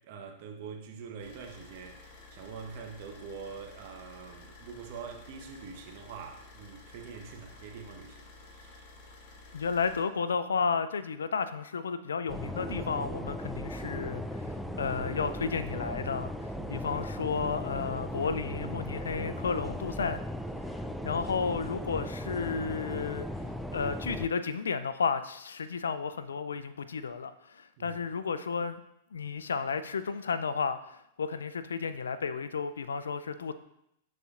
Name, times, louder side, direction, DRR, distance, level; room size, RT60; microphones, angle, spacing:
voice 1, 0.1-8.2 8.5-8.8 16.5-16.8 27.8-28.0, right 6 dB, 55° right, 3 dB, 1.1 m, -44 dB
Car / Idling, 1.2-10.0, left 3 dB, 50° left, 2.2 m, -52 dB
voice 2, 9.5-14.5 14.8-16.3 16.7-20.2 21.0-23.3 23.7-28.8 29.1-33.5, left 5 dB, 80° left, 12 dB, 0.4 m, -32 dB
sound 1, 12.3-24.3, equal, ahead, 0.4 m, -37 dB
11.5 x 4.2 x 2.5 m, 0.79 s
hypercardioid pair, 105°, 0 cm